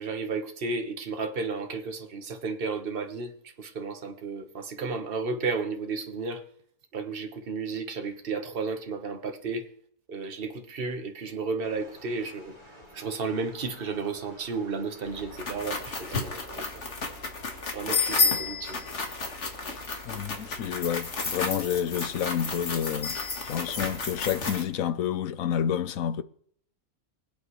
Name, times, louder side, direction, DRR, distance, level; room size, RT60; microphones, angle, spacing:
voice 1, 0.0-6.4 6.9-9.7 10.1-12.6 12.9-16.9 17.7-18.9, right 4 dB, 40° right, 1.5 m, -33 dB
sound 1, 11.6-16.7, equal, 30° left, 5.1 m, -51 dB
sound 2, 15.1-24.6, left 4 dB, 50° left, 2.0 m, -31 dB
voice 2, 20.0-23.2 23.4-26.2, left 9 dB, 65° left, 1.2 m, -29 dB
25.5 x 8.5 x 3.2 m
omnidirectional pair, 1.6 m